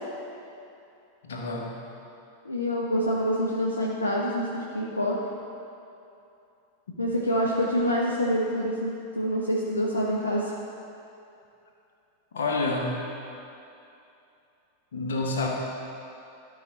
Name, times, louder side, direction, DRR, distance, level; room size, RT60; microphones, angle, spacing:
voice 1, 1.2-1.7 6.9-7.0 12.3-12.9 14.9-15.5, left 3 dB, 65° left, 0 dB, 1.1 m, -28 dB
voice 2, 2.4-5.2 7.0-10.5, equal, 80° left, -3 dB, 0.7 m, -26 dB
11.5 x 5.0 x 4.1 m, 2.7 s
figure-of-eight pair, 90°, 0 cm